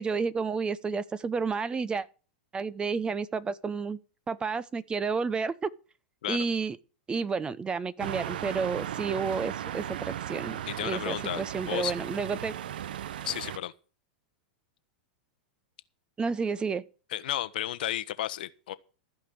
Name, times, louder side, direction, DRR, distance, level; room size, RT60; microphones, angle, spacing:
voice 1, 0.0-2.1 2.5-4.0 4.3-5.7 6.3-6.8 7.1-12.5 16.2-16.8, right 5 dB, 20° right, 0.7 m, -31 dB
sound 1, 8.0-13.6, right 11 dB, 80° right, 0.6 m, -36 dB
voice 2, 10.7-11.9 13.2-13.7 17.1-18.7, left 13 dB, 75° left, 1.0 m, -33 dB
14.5 x 5.2 x 9.0 m
hypercardioid pair, 115°, 5 cm